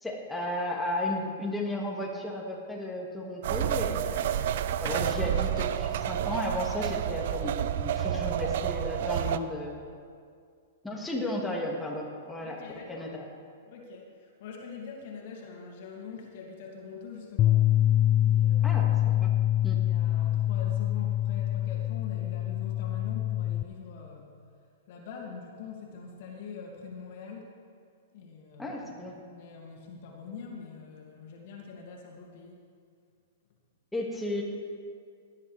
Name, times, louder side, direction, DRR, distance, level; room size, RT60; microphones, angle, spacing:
voice 1, 0.0-9.8 10.8-12.6 12.9-13.3 18.6-19.3 19.6-19.8 28.6-29.1 33.9-34.4, left 1 dB, 5° left, -2 dB, 2.1 m, -34 dB
sound 1, 3.4-9.4, right 10 dB, 60° right, 0.5 m, -29 dB
voice 2, 3.9-4.2 8.0-8.4 10.9-11.3 12.4-13.1 13.7-17.7 18.2-19.3 19.7-24.3 24.9-27.5 28.1-32.6, left 5 dB, 55° left, 0 dB, 2.5 m, -44 dB
Bass guitar, 17.4-23.6, left 12 dB, 30° left, 0.4 m, -25 dB
18.0 x 11.0 x 3.5 m, 2.2 s
hypercardioid pair, 110°, 0 cm